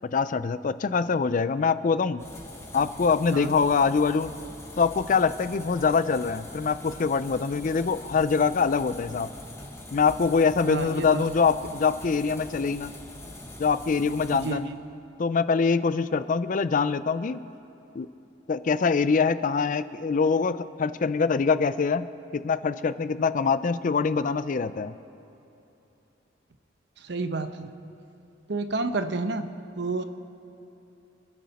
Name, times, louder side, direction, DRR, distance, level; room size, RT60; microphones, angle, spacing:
voice 1, 0.1-2.2 2.7-4.3 4.8-9.3 9.9-12.9 13.6-14.7 15.2-17.4 17.9-18.1 18.5-22.1 22.3-24.9, left 5 dB, 45° left, 14 dB, 0.4 m, -24 dB
sound 1, 2.2-14.5, left 1 dB, 15° left, 1.4 m, -43 dB
voice 2, 10.7-11.3 14.3-14.7 27.0-27.7 28.5-29.5 29.8-30.0, right 3 dB, 65° right, 9 dB, 0.8 m, -30 dB
26.5 x 10.5 x 4.2 m, 2.9 s
head